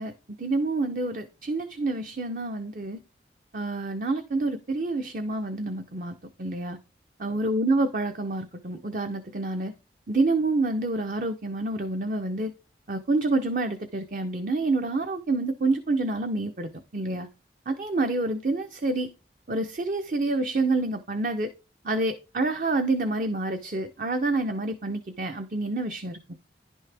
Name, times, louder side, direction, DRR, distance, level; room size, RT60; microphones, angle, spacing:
voice 1, 0.0-3.0 3.5-6.8 7.2-9.7 10.1-12.5 12.9-17.3 17.7-19.1 19.5-21.5 21.8-26.3, right 2 dB, 45° right, 0.7 m, -28 dB
11.0 x 6.2 x 3.4 m
head